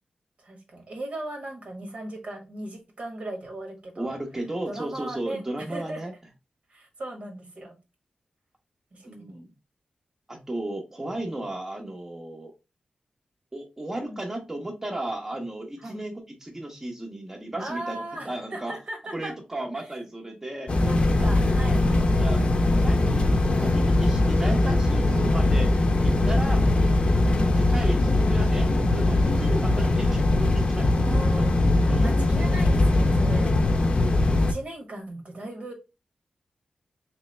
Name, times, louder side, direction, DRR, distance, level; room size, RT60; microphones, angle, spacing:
voice 1, 0.4-4.2 4.6-6.2 6.7-7.7 8.9-9.4 14.1-14.2 15.8-16.0 17.6-19.3 19.7-19.8 20.8-22.7 26.4-26.8 31.0-33.6 34.3-35.7, right 1 dB, 65° right, 2 dB, 1.2 m, -38 dB
voice 2, 4.0-6.1 9.0-9.5 10.3-12.5 13.5-18.8 19.1-20.7 22.2-26.6 27.5-30.9 31.9-32.1 32.4-32.5 32.8-32.9 33.4-34.0, right 1 dB, 20° right, 1 dB, 0.8 m, -35 dB
sound 1, 20.7-34.5, left 2 dB, 50° left, 0.6 m, -21 dB
3.3 x 3.1 x 3.1 m, 0.27 s
wide cardioid pair, 95°, 2 cm